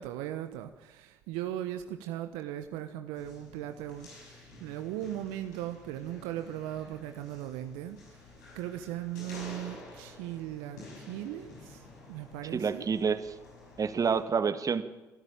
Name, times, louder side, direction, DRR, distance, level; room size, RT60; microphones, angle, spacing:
voice 1, 0.0-8.2 8.5-12.8, right 12 dB, 75° right, 8 dB, 1.1 m, -38 dB
sound 1, 3.1-14.2, left 2 dB, 85° left, 6.1 m, -50 dB
voice 2, 12.5-13.3 13.8-14.8, right 6 dB, 40° right, 11 dB, 1.8 m, -28 dB
24.5 x 13.5 x 9.0 m, 1.1 s
hypercardioid pair, 50°, 9 cm